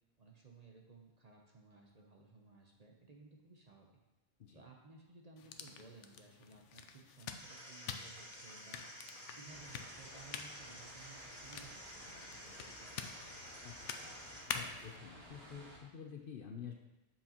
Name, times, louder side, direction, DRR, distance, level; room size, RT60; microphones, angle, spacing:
voice 1, 0.2-4.0 4.5-8.9 9.4-13.0, right 4 dB, 40° right, 0 dB, 0.8 m, -58 dB
sound 1, 5.4-15.0, left 7 dB, 85° left, 0.9 m, -48 dB
sound 2, 7.4-14.4, equal, 10° left, 1.7 m, -52 dB
sound 3, 9.5-15.8, equal, 70° right, 1.8 m, -56 dB
voice 2, 13.6-16.7, left 7 dB, 55° left, 3 dB, 0.8 m, -50 dB
7.4 x 5.8 x 2.9 m, 1.0 s
omnidirectional pair, 1.2 m